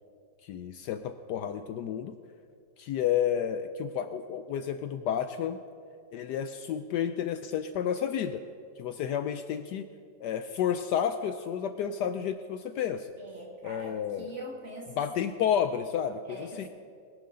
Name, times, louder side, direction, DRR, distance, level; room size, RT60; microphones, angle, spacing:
voice 1, 0.4-2.2 2.8-5.6 6.1-8.4 8.8-9.9 10.2-13.1 13.6-14.4 15.0-16.7, left 9 dB, 75° left, 9 dB, 1.0 m, -31 dB
voice 2, 13.2-15.0 16.3-16.7, right 1 dB, 40° right, -1 dB, 2.3 m, -43 dB
21.5 x 11.0 x 3.8 m, 2.3 s
omnidirectional pair, 2.0 m